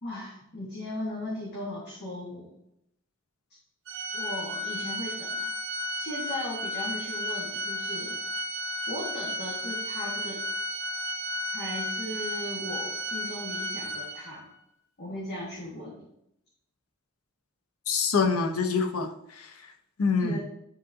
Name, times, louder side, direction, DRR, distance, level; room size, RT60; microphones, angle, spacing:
voice 1, 0.0-2.5 4.1-5.5 5.9-8.2 8.9-10.4 11.5-14.5 15.0-16.1 20.2-20.4, left 1 dB, 50° left, -5 dB, 1.4 m, -37 dB
Organ, 3.9-14.5, equal, 60° right, 1.1 m, -33 dB
voice 2, 17.9-19.7 20.0-20.4, left 5 dB, 80° left, 5 dB, 0.7 m, -26 dB
10.0 x 3.8 x 2.7 m, 0.79 s
head